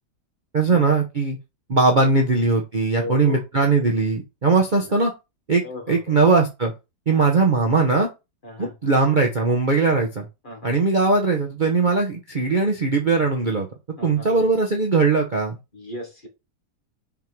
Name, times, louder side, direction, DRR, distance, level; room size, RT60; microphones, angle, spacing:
voice 1, 0.5-1.4 1.7-5.1 5.5-6.7 7.1-8.1 8.6-10.3 10.6-13.7 14.0-15.6, right 4 dB, 35° right, 1 dB, 0.8 m, -20 dB
voice 2, 2.9-3.9 4.7-4.8 5.6-6.2 7.1-7.4 8.4-8.7 9.9-10.0 10.4-10.7 14.0-14.4 15.7-16.3, left 1 dB, 30° left, 3 dB, 1.5 m, -36 dB
5.7 x 3.6 x 4.5 m, 0.25 s
omnidirectional pair, 1.8 m